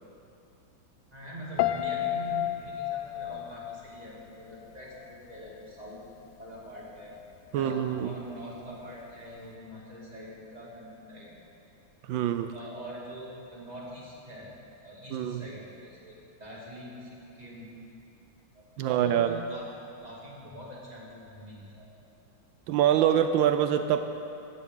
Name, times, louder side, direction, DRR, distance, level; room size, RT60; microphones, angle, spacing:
voice 1, 1.1-6.0 6.4-7.1 7.5-11.3 12.5-14.5 14.8-17.7 18.5-19.7 20.0-21.9, equal, 20° right, -5 dB, 2.9 m, -44 dB
Piano, 1.6-4.7 5.0-5.4, left 13 dB, 75° left, 1.2 m, -31 dB
voice 2, 7.5-8.1 12.1-12.5 15.1-15.4 18.8-19.4 22.7-24.0, right 10 dB, 85° right, 8 dB, 1.3 m, -25 dB
17.5 x 13.5 x 3.9 m, 2.7 s
omnidirectional pair, 2.1 m